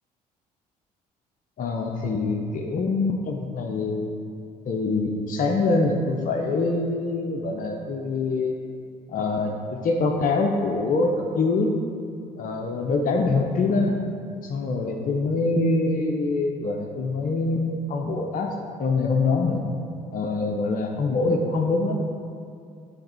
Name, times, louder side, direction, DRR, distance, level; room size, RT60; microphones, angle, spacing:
voice 1, 1.6-4.1 4.7-8.5 9.1-11.7 12.4-13.9 14.4-18.5 18.8-19.7 20.1-22.0, left 3 dB, 45° left, 1 dB, 0.7 m, -24 dB
8.8 x 3.4 x 4.3 m, 2.4 s
hypercardioid pair, 55°, 19 cm